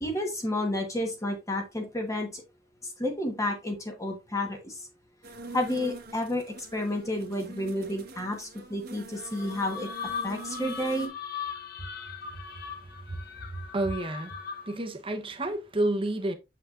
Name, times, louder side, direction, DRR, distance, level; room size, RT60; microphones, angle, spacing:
voice 1, 0.0-2.4 3.0-4.8 5.5-9.9 10.2-11.1, left 1 dB, 15° left, 1.2 m, -31 dB
sound 1, 5.2-11.1, right 3 dB, 55° right, 1.2 m, -45 dB
sound 2, 9.2-14.9, left 6 dB, 55° left, 0.9 m, -39 dB
voice 2, 13.1-14.4 14.7-16.3, right 1 dB, 30° right, 0.9 m, -30 dB
7.0 x 5.7 x 2.4 m
head